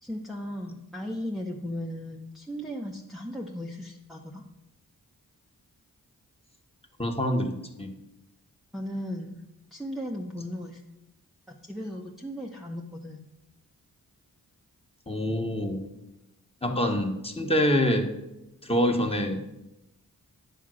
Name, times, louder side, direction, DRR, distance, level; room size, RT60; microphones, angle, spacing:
voice 1, 0.0-4.4 8.7-10.8 11.5-13.2, equal, ahead, -2 dB, 0.9 m, -36 dB
voice 2, 7.0-7.9 15.1-15.9 16.6-18.1 18.6-19.4, equal, 15° left, 3 dB, 1.3 m, -26 dB
9.2 x 3.7 x 6.2 m, 0.92 s
cardioid pair, 45°, 36 cm